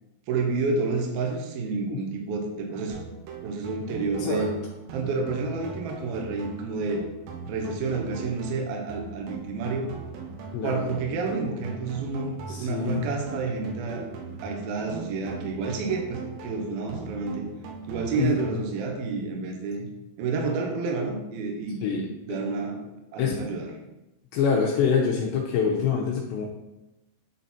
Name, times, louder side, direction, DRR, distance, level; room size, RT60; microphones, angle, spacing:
voice 1, 0.3-3.0 3.4-4.5 4.9-7.0 7.4-9.9 10.6-14.1 14.4-17.5 17.9-19.9 20.2-22.9 23.1-23.7, right 4 dB, 70° right, 1 dB, 2.3 m, -29 dB
sound 1, 2.9-18.9, right 5 dB, 90° right, 3.7 m, -40 dB
voice 2, 3.9-4.5 10.5-10.9 12.5-13.0 18.2-18.6 21.8-22.0 23.2-23.3 24.3-26.5, left 6 dB, 80° left, -2 dB, 2.6 m, -25 dB
9.7 x 4.0 x 4.3 m, 0.96 s
omnidirectional pair, 5.8 m